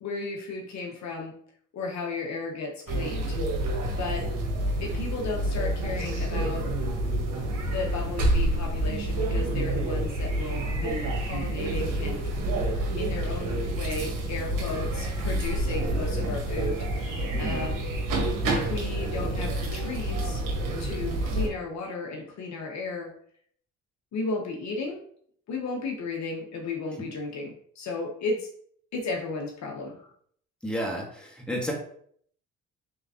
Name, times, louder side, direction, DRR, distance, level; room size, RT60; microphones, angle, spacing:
voice 1, 0.0-1.3 1.7-3.4 4.0-4.3 4.8-6.7 7.7-12.2 13.0-17.8 18.5-20.4 20.8-23.1 24.1-25.0 25.5-28.5 28.9-30.1, left 3 dB, 55° left, 1 dB, 0.8 m, -34 dB
sound 1, 2.9-21.5, right 1 dB, 70° right, 1.3 m, -28 dB
voice 2, 17.3-17.6 30.6-31.7, equal, 5° left, -1 dB, 1.4 m, -32 dB
3.7 x 3.4 x 2.8 m, 0.62 s
supercardioid pair, 65°, 33 cm